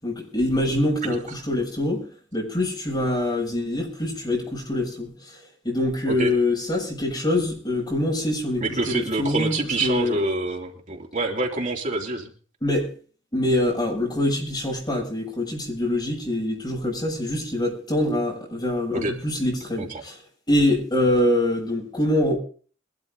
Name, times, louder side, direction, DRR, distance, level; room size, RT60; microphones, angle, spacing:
voice 1, 0.0-2.1 2.3-5.1 5.6-10.2 12.6-12.9 13.3-20.1 20.5-22.4, left 1 dB, 25° left, 7.3 m, -24 dB
voice 2, 8.6-12.3 18.9-19.1 19.8-20.0, right 2 dB, 40° right, 3.4 m, -26 dB
22.0 x 12.5 x 4.0 m
head